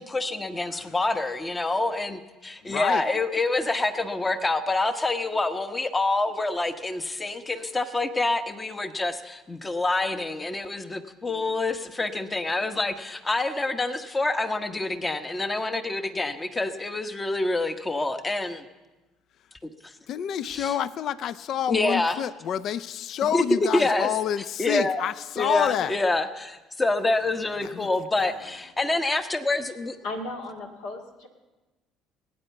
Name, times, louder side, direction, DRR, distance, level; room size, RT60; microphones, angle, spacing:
voice 1, 0.0-18.7 19.8-19.9 20.5-20.7 21.7-22.2 23.3-24.1 24.6-25.0 25.4-30.0, left 2 dB, 20° left, 1.1 m, -27 dB
voice 2, 2.6-3.1 20.1-25.9 27.6-27.9, left 10 dB, 55° left, 0.4 m, -28 dB
voice 3, 30.0-31.3, left 2 dB, 70° left, 1.9 m, -35 dB
18.5 x 9.3 x 7.1 m
figure-of-eight pair, 55°, 0 cm